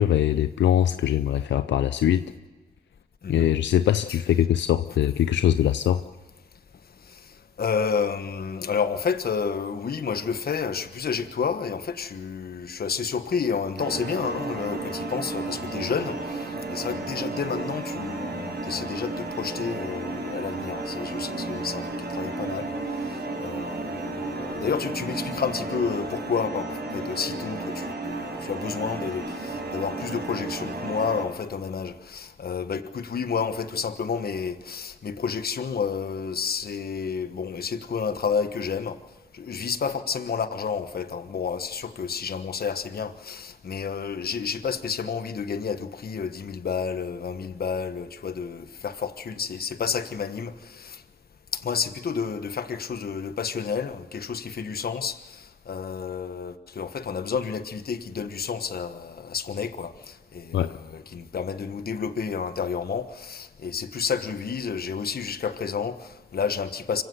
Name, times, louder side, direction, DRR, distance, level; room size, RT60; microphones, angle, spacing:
voice 1, 0.0-2.2 3.3-6.0 60.5-60.7, left 11 dB, 90° left, 0.6 m, -22 dB
voice 2, 7.6-22.7 23.4-39.0 39.3-51.0 51.5-67.0, left 6 dB, 60° left, 1.4 m, -30 dB
sound 1, 13.8-31.2, right 2 dB, 70° right, 5.4 m, -33 dB
25.5 x 16.0 x 8.1 m
cardioid pair, 70°, 18 cm